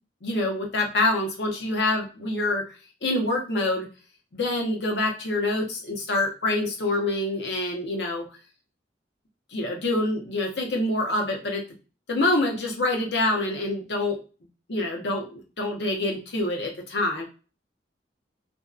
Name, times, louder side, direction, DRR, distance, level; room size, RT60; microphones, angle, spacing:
voice 1, 0.2-2.6 3.0-3.9 4.3-8.2 9.5-11.6 12.1-14.2 14.7-17.2, left 2 dB, 70° left, 1 dB, 0.7 m, -26 dB
2.6 x 2.2 x 2.3 m, 0.34 s
head